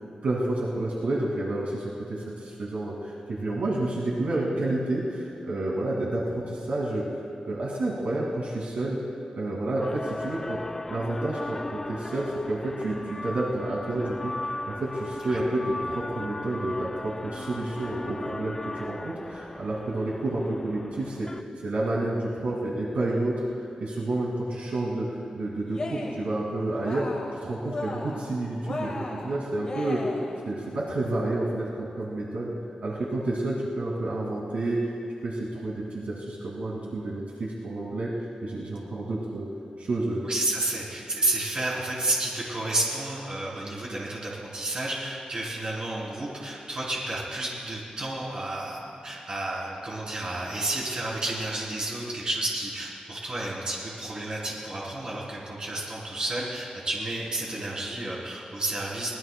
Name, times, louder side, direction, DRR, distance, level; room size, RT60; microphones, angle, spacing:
voice 1, 0.2-7.1 7.5-9.0 9.3-10.6 10.9-21.3 21.6-23.5 23.8-27.1 27.4-30.0 30.4-32.5 32.8-34.9 35.2-38.1 38.4-39.5 39.8-40.2, right 2 dB, 70° right, -5 dB, 2.4 m, -30 dB
sound 1, 9.8-21.4, left 2 dB, 15° left, 0.3 m, -37 dB
Cheering, 25.6-26.3 26.7-27.4 27.6-28.3 28.6-30.4, left 2 dB, 40° left, 1.8 m, -36 dB
voice 2, 40.2-59.2, right 2 dB, 35° right, -5 dB, 3.4 m, -31 dB
23.5 x 19.0 x 2.3 m, 2.5 s
wide cardioid pair, 175°, 2 cm